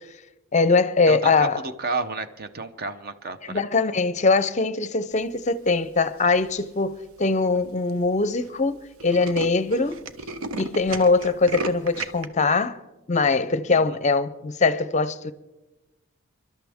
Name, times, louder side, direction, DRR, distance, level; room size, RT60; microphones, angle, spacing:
voice 1, 0.5-1.6 3.4-10.0 10.6-12.8 13.1-15.3, left 3 dB, 35° left, 0.5 m, -22 dB
voice 2, 1.1-3.6 13.7-13.8, right 3 dB, 45° right, 0.8 m, -31 dB
Tools, 6.2-6.6 7.2-7.3 7.6-7.7 7.9-8.1 8.4-8.5 8.8-12.3, right 3 dB, 85° right, 1.0 m, -33 dB
28.5 x 12.0 x 3.6 m
head